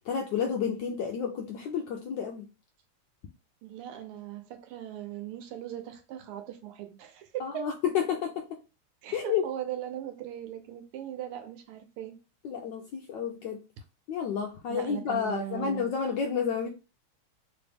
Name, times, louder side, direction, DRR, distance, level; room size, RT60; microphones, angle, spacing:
voice 1, 0.1-2.4 7.4-8.4 9.1-9.4 12.4-13.6 14.1-16.7, left 7 dB, 75° left, 1.0 m, -30 dB
voice 2, 3.6-7.7 9.0-12.2 14.7-15.9, right 11 dB, 85° right, 1.6 m, -39 dB
3.4 x 3.1 x 3.4 m
omnidirectional pair, 2.4 m